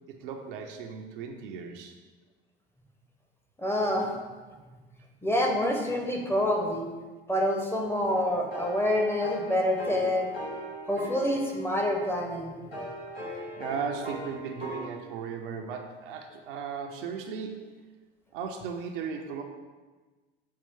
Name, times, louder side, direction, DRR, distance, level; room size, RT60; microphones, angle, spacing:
voice 1, 0.1-2.0 13.1-17.7 18.3-19.4, right 6 dB, 65° right, 3 dB, 0.5 m, -37 dB
voice 2, 3.6-4.1 5.2-6.9 7.3-10.3 10.9-12.5, left 1 dB, 10° left, 0 dB, 0.6 m, -27 dB
sound 1, 8.2-14.9, equal, 90° left, 1.0 m, -40 dB
5.4 x 2.4 x 3.5 m, 1.3 s
figure-of-eight pair, 60°, 29 cm